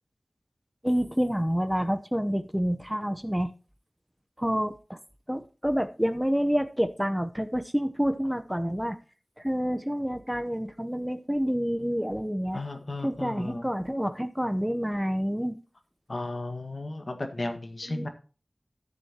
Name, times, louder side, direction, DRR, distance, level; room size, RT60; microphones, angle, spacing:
voice 1, 0.8-3.5 4.4-5.0 5.3-9.0 9.4-12.6 13.0-15.6 17.9-18.1, equal, 5° right, 9 dB, 0.9 m, -28 dB
voice 2, 12.5-13.7 16.1-18.1, left 2 dB, 65° left, 6 dB, 1.7 m, -34 dB
13.5 x 7.0 x 3.0 m, 0.37 s
wide cardioid pair, 40°, 0 cm